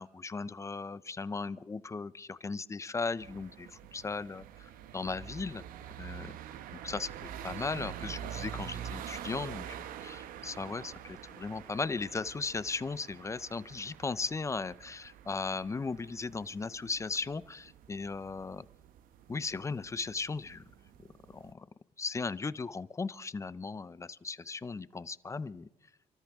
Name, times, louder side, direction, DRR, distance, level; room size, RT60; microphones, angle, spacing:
voice 1, 0.0-5.6 6.0-6.4 6.8-18.7 19.3-20.6 21.3-21.7 22.0-25.7, left 4 dB, 20° left, 18 dB, 0.5 m, -37 dB
sound 1, 3.2-21.5, right 10 dB, 85° right, 0.9 m, -46 dB
29.5 x 13.5 x 3.5 m, 0.95 s
cardioid pair, 105°, 14 cm